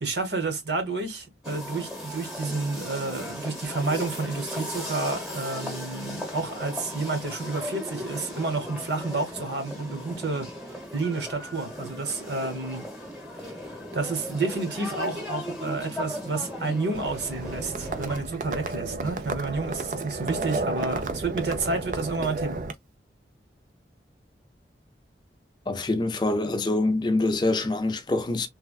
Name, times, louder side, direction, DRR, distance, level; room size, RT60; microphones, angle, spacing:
voice 1, 0.0-12.9 13.4-13.5 13.9-22.6, right 3 dB, 80° right, 1.1 m, -30 dB
sound 1, 1.4-18.2, left 1 dB, ahead, 1.0 m, -37 dB
Livestock farm animals working animals, 16.9-22.7, right 3 dB, 45° right, 0.4 m, -32 dB
voice 2, 25.7-28.5, left 2 dB, 25° left, 0.4 m, -25 dB
3.2 x 2.2 x 2.3 m
head